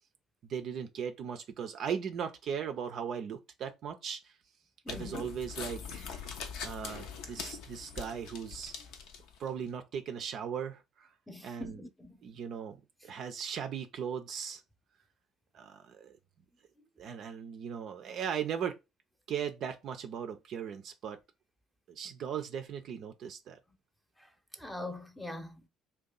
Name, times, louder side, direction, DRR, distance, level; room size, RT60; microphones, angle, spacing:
voice 1, 0.4-4.3 4.9-6.1 6.6-8.7 9.4-11.1 11.4-11.8 12.2-14.6 15.5-16.2 17.0-18.8 19.3-21.2 21.9-23.6, right 7 dB, 55° right, 0.5 m, -38 dB
voice 2, 4.8-5.3 11.3-12.2 24.2-25.7, left 2 dB, 5° left, 0.7 m, -43 dB
sound 1, 4.9-9.5, left 6 dB, 65° left, 0.6 m, -42 dB
2.7 x 2.3 x 3.8 m
hypercardioid pair, 55°, 0 cm